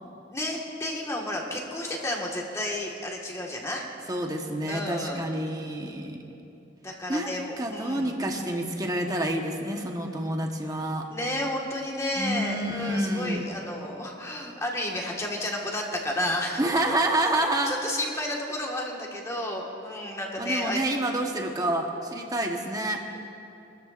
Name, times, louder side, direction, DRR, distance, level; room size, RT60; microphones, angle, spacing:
voice 1, 0.0-3.8 4.7-5.3 6.8-8.1 11.1-16.6 16.9-17.0 17.7-20.8, left 1 dB, 15° left, -1 dB, 1.6 m, -32 dB
voice 2, 4.1-6.2 7.1-11.1 12.2-13.4 16.6-17.7 20.4-23.0, right 1 dB, 20° right, 2 dB, 1.1 m, -28 dB
23.5 x 13.0 x 2.5 m, 2.7 s
head